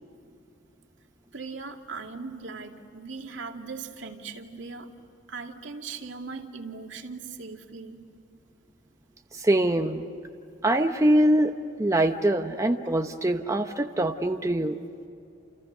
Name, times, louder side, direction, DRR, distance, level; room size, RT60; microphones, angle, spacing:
voice 1, 1.3-4.9 5.3-8.0, right 4 dB, 80° right, 2 dB, 2.4 m, -39 dB
voice 2, 9.3-10.1 10.6-11.5 11.8-14.7, right 1 dB, 15° right, 5 dB, 0.9 m, -23 dB
30.0 x 29.5 x 6.7 m, 2.6 s
head